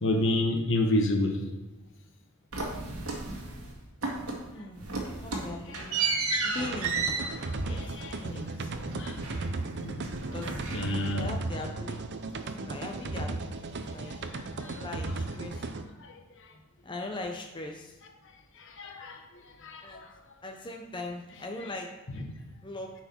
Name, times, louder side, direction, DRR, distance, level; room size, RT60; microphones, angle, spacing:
voice 1, 0.0-1.5 5.7-5.8 7.5-8.4 9.0-9.5 9.7-10.1 10.7-11.3 14.3-14.8 16.0-16.1 18.6-19.2 19.6-20.1 22.1-22.3, left 1 dB, 60° left, 4 dB, 1.1 m, -30 dB
sound 1, 2.5-3.7 4.0-4.5 4.8-9.7 10.0-11.3, right 3 dB, 75° right, 1.8 m, -33 dB
voice 2, 4.5-4.9 5.2-5.9 6.4-7.3 7.6-7.8 8.2-8.9 10.3-10.6 11.1-12.0 12.4-13.5 13.9-14.2 14.8-15.7 16.8-18.0 19.8-20.1 20.4-21.9 22.6-22.9, left 2 dB, 20° left, 2 dB, 0.7 m, -40 dB
sound 2, 6.6-15.8, right 3 dB, 55° right, 0.6 m, -36 dB
10.5 x 4.7 x 4.4 m, 1.1 s
head